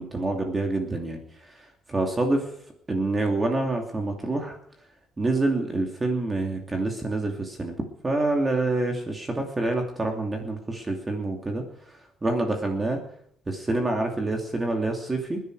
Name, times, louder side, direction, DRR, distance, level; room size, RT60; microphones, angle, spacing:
voice 1, 0.0-2.5 2.9-4.6 5.2-7.8 8.0-13.0 13.5-15.4, right 2 dB, 15° right, 2 dB, 2.7 m, -27 dB
28.0 x 10.5 x 4.8 m, 0.66 s
cardioid pair, 150°, 0 cm